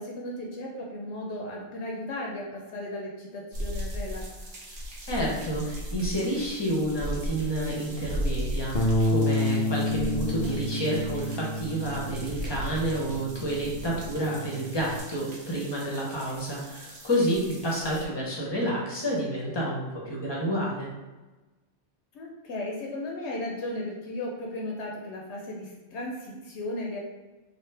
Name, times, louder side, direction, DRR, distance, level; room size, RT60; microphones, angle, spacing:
voice 1, 0.0-4.2 10.2-10.6 17.8-18.1 22.1-27.0, left 1 dB, 80° left, -1 dB, 0.9 m, -36 dB
sound 1, 3.5-18.1, equal, 55° right, 0.8 m, -37 dB
voice 2, 5.1-20.9, right 1 dB, 25° left, -4 dB, 0.8 m, -29 dB
Bass guitar, 8.7-15.0, left 1 dB, 60° left, 0.4 m, -29 dB
3.3 x 2.4 x 3.3 m, 1.1 s
omnidirectional pair, 1.1 m